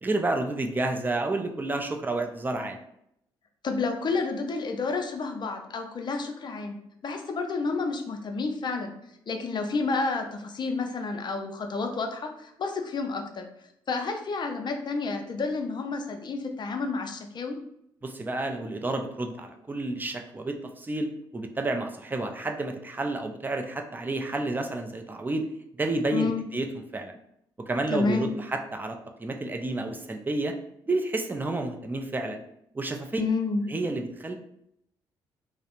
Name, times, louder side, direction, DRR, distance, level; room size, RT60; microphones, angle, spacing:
voice 1, 0.0-2.8 18.0-25.4 25.8-26.7 26.9-27.1 27.7-30.5 30.9-32.4 32.7-33.3 33.7-34.4, right 2 dB, 15° right, 4 dB, 0.4 m, -30 dB
voice 2, 3.6-6.8 7.0-8.9 9.3-13.5 13.9-17.6 26.1-26.4 27.9-28.4 33.2-33.6, left 4 dB, 40° left, 4 dB, 0.5 m, -30 dB
2.3 x 2.0 x 2.9 m, 0.75 s
hypercardioid pair, 45°, 11 cm